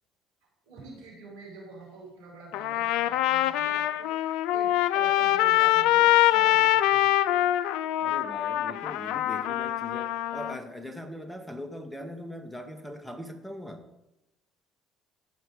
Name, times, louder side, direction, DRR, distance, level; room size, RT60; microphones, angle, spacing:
voice 1, 0.7-7.1, right 3 dB, 85° right, -3 dB, 4.9 m, -46 dB
Trumpet, 2.5-10.6, left 14 dB, 75° left, 0.4 m, -24 dB
voice 2, 8.0-13.8, equal, 5° left, 6 dB, 2.0 m, -40 dB
16.5 x 5.8 x 5.0 m, 0.94 s
hypercardioid pair, 65°, 0 cm